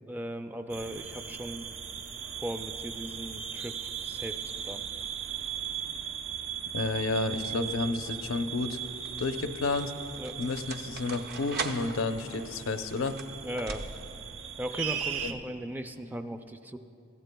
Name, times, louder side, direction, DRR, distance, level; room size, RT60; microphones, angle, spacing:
voice 1, 0.0-1.7 2.4-4.8 10.2-10.4 13.4-13.9 14.6-16.8, equal, 10° right, 7 dB, 0.4 m, -38 dB
sound 1, 0.7-15.3, right 8 dB, 85° right, 0.7 m, -38 dB
voice 2, 6.7-8.8 9.2-9.9 10.4-13.2 15.2-15.3, left 3 dB, 85° left, 8 dB, 0.7 m, -31 dB
sound 2, 9.0-14.3, right 4 dB, 55° right, 0.7 m, -41 dB
20.5 x 15.0 x 2.3 m, 2.5 s
head